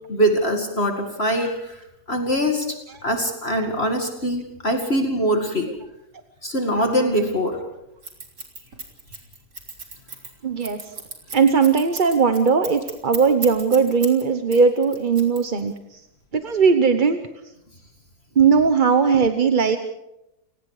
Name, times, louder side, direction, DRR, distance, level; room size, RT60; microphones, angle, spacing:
voice 1, 0.1-5.7 6.4-7.6, equal, 40° left, 3 dB, 2.4 m, -23 dB
Scissors, 8.0-14.2 14.5-15.8, right 4 dB, 85° right, 4.0 m, -35 dB
voice 2, 10.4-10.9 11.3-16.0 16.3-17.2 18.3-19.8, right 5 dB, 35° right, 8 dB, 1.0 m, -18 dB
30.0 x 18.5 x 4.9 m, 0.87 s
omnidirectional pair, 1.7 m